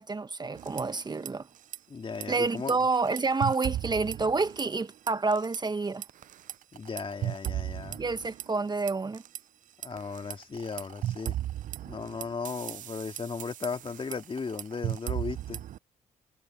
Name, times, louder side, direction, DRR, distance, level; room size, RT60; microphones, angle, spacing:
voice 1, 0.0-1.5 2.3-6.0 8.0-9.2, right 3 dB, 30° right, 1.2 m, -28 dB
sound 1, 0.5-1.3 1.6-1.8 2.1-4.8 5.1-5.6 6.0-9.4 9.8-15.8, right 12 dB, 60° right, 0.6 m, -36 dB
voice 2, 1.9-2.8 6.7-8.0 9.8-11.4 11.8-15.6, left 5 dB, 35° left, 2.6 m, -36 dB
supercardioid pair, 55°, 15 cm